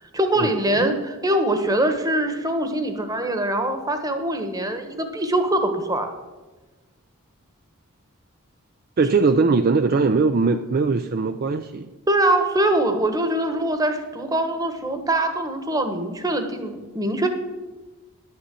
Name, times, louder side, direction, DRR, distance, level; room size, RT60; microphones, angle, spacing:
voice 1, 0.1-6.1 12.1-17.3, right 1 dB, 15° right, 6 dB, 1.1 m, -23 dB
voice 2, 9.0-11.9, right 4 dB, 40° right, 8 dB, 0.4 m, -20 dB
11.5 x 6.4 x 7.5 m, 1.2 s
head